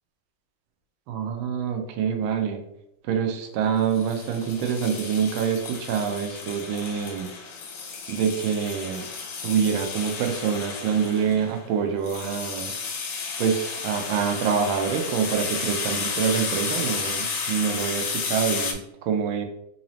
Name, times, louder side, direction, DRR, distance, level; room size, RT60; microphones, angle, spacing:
voice 1, 1.1-2.6 3.1-7.3 8.1-9.0 9.4-12.7 13.4-19.5, right 7 dB, 85° right, 5 dB, 1.4 m, -26 dB
sound 1, 3.9-18.7, left 5 dB, 70° left, 0.9 m, -32 dB
3.9 x 2.7 x 3.0 m, 0.80 s
omnidirectional pair, 2.2 m